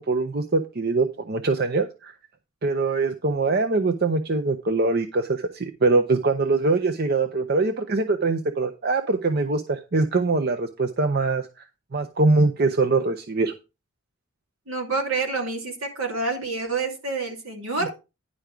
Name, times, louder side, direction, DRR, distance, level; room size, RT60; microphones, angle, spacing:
voice 1, 0.0-2.1 2.6-11.6 11.9-13.5, right 3 dB, 45° right, 7 dB, 0.6 m, -23 dB
voice 2, 14.7-17.9, right 3 dB, 70° right, 2 dB, 2.5 m, -28 dB
10.0 x 5.3 x 4.7 m, 0.28 s
head